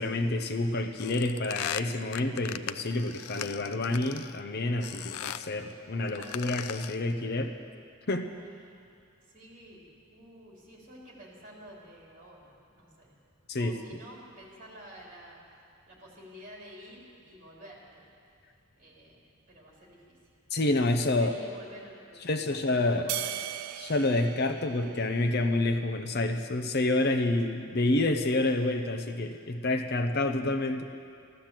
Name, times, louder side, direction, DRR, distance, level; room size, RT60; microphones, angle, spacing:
voice 1, 0.0-7.5 8.1-8.3 13.5-14.0 20.5-21.3 22.2-23.1 23.8-30.8, left 2 dB, 45° left, 7 dB, 0.7 m, -28 dB
sound 1, 1.0-4.4 4.8-5.5 6.1-7.1, left 10 dB, 85° left, 0.4 m, -39 dB
voice 2, 5.9-6.5 8.6-8.8 9.2-13.1 13.5-15.4 15.9-18.1 18.8-20.3 20.7-23.6, equal, 35° right, -3 dB, 3.2 m, -50 dB
sound 2, 23.1-25.7, right 12 dB, 80° right, 0.5 m, -38 dB
14.5 x 12.0 x 7.5 m, 2.4 s
head